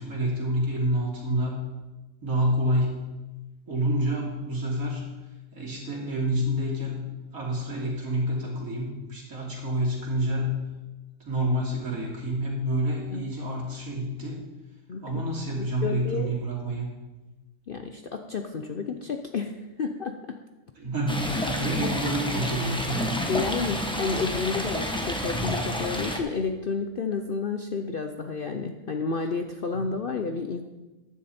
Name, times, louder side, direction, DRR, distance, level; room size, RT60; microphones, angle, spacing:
voice 1, 0.0-1.6 2.2-3.0 3.7-5.0 5.5-7.0 7.3-10.5 11.2-14.4 15.0-16.9 20.8-23.1 29.7-29.9, right 1 dB, 65° right, -3 dB, 3.3 m, -28 dB
voice 2, 15.6-16.3 17.7-20.4 22.0-22.1 23.3-30.6, left 4 dB, 55° left, 6 dB, 0.6 m, -31 dB
Stream, 21.1-26.2, equal, 5° left, 1.0 m, -29 dB
14.5 x 10.0 x 4.3 m, 1.1 s
omnidirectional pair, 1.6 m